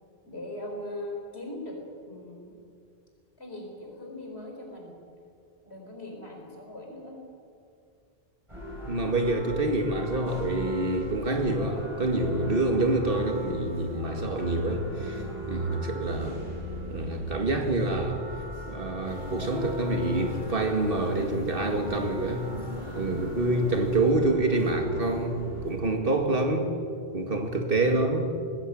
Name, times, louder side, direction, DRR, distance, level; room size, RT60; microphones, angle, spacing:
voice 1, 0.2-1.8 2.1-2.6 3.4-4.9 5.6-7.2 15.6-15.8, left 1 dB, 90° left, 0 dB, 4.8 m, -40 dB
sound 1, 8.5-25.7, equal, 30° right, 5.8 m, -39 dB
voice 2, 8.9-15.2 15.5-16.5 16.9-18.2 18.7-22.5 23.0-26.7 27.1-28.3, right 2 dB, 60° right, 4 dB, 2.3 m, -27 dB
sound 2, 19.1-24.1, left 5 dB, 50° left, 1.1 m, -42 dB
19.5 x 15.5 x 8.8 m, 2.4 s
omnidirectional pair, 1.0 m